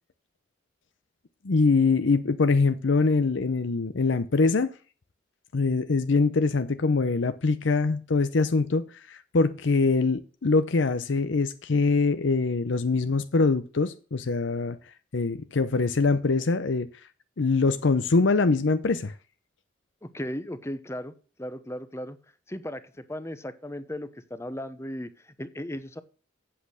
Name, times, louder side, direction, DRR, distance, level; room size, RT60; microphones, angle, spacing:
voice 1, 1.4-4.7 5.5-14.8 15.1-16.9 17.4-19.1, left 3 dB, 70° left, 0.7 m, -23 dB
voice 2, 20.0-21.1 21.4-22.2 22.5-26.0, left 1 dB, 15° left, 0.8 m, -36 dB
8.4 x 7.9 x 6.2 m
head